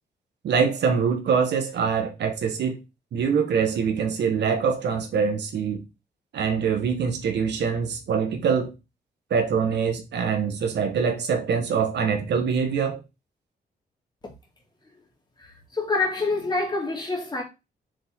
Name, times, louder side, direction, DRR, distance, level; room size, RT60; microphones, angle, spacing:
voice 1, 0.4-2.8 3.1-5.8 6.3-8.7 9.3-13.0, right 6 dB, 85° right, 1.7 m, -24 dB
voice 2, 15.4-17.4, left 3 dB, 25° left, 2.9 m, -26 dB
6.6 x 5.6 x 3.9 m
wide cardioid pair, 160°, 17 cm